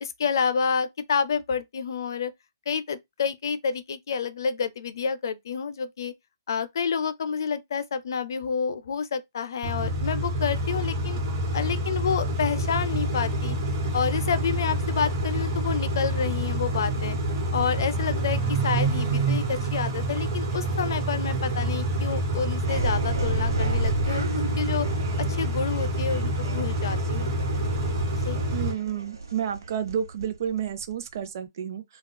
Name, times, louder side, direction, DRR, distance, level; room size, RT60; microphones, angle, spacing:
voice 1, 0.0-2.3 2.7-6.1 6.5-11.2 11.5-13.6 13.9-17.2 17.5-27.3 28.2-28.4, left 6 dB, 70° left, 0.5 m, -29 dB
Car / Idling / Accelerating revving vroom, 9.6-28.7, right 1 dB, 40° right, 1.4 m, -27 dB
sound 1, 22.6-31.3, right 2 dB, 85° right, 0.9 m, -33 dB
voice 2, 28.5-31.8, right 9 dB, 55° right, 0.5 m, -30 dB
3.5 x 2.3 x 2.2 m
hypercardioid pair, 145°, 2 cm